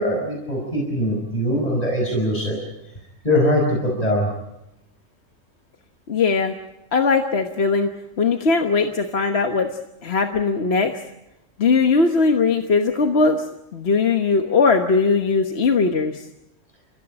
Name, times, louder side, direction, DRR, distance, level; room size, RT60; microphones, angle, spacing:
voice 1, 0.0-2.6 3.2-4.3, equal, 30° left, -1 dB, 5.7 m, -21 dB
voice 2, 6.1-6.5 6.9-7.9 8.2-9.7 10.0-10.9 11.6-13.4 13.7-16.2, left 4 dB, 55° left, 5 dB, 1.5 m, -19 dB
29.5 x 16.0 x 8.8 m, 0.90 s
omnidirectional pair, 1.3 m